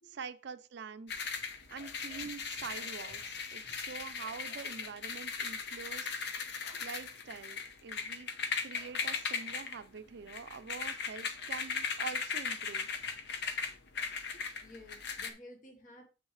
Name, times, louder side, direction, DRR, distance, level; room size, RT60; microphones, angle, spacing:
voice 1, 0.0-1.2 1.7-6.3 6.8-8.3 8.6-12.9, right 6 dB, 65° right, 0.5 m, -45 dB
sound 1, 1.1-15.3, left 5 dB, 65° left, 1.0 m, -38 dB
voice 2, 14.1-16.0, left 1 dB, 45° left, 1.3 m, -54 dB
7.9 x 6.3 x 3.2 m
head